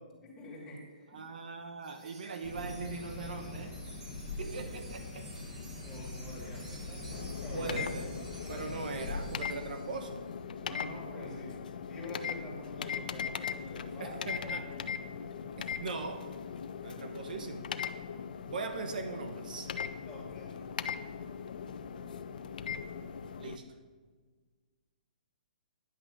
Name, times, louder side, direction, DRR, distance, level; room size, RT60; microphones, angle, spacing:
voice 1, 0.2-1.2 2.4-2.5 5.8-7.9 8.4-9.1 10.6-11.5 11.9-15.3 20.0-20.7, left 1 dB, 10° left, -5 dB, 2.7 m, -46 dB
voice 2, 1.1-3.8 4.4-5.6 7.5-8.1 8.5-10.2 14.0-14.7 15.6-16.3 16.8-17.7 18.5-19.7 23.4-23.6, right 4 dB, 65° right, 7 dB, 1.0 m, -40 dB
Wind chime, 1.8-10.0, right 3 dB, 50° right, 2.4 m, -54 dB
sound 1, 2.4-9.4, left 3 dB, 45° left, 1.3 m, -42 dB
sound 2, 7.1-23.6, left 7 dB, 65° left, 0.5 m, -40 dB
10.0 x 6.1 x 5.4 m, 1.5 s
hypercardioid pair, 155°, 5 cm